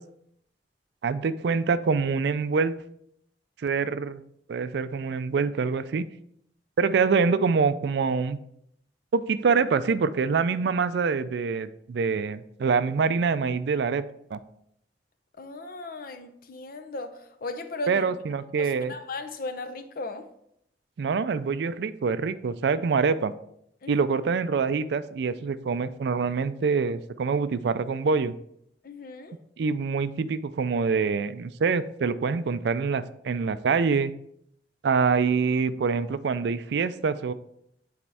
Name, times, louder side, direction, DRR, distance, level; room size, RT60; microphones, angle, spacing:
voice 1, 1.0-2.7 3.6-4.2 4.5-6.0 6.8-8.4 9.1-14.0 14.3-14.4 17.9-18.9 21.0-23.3 23.9-28.3 29.6-34.1 34.8-37.3, right 5 dB, 70° right, 0.4 m, -25 dB
voice 2, 15.4-18.1 18.6-20.2 23.8-24.1 28.8-29.3, left 2 dB, 55° left, 0.7 m, -37 dB
8.5 x 4.3 x 3.4 m
head